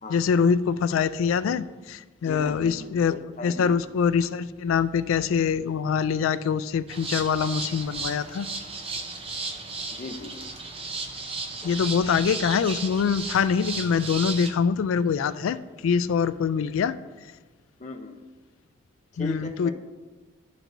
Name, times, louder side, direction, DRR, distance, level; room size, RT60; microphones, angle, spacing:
voice 1, 0.1-3.1 3.4-8.5 11.6-16.9 19.2-19.7, left 6 dB, 70° left, 14 dB, 0.3 m, -24 dB
voice 2, 2.2-3.7 9.9-10.5 17.8-18.2 19.2-19.7, left 2 dB, 35° left, 2 dB, 0.7 m, -36 dB
sound 1, 6.9-14.5, right 3 dB, 25° right, 0.6 m, -34 dB
12.0 x 4.5 x 2.6 m, 1.3 s
head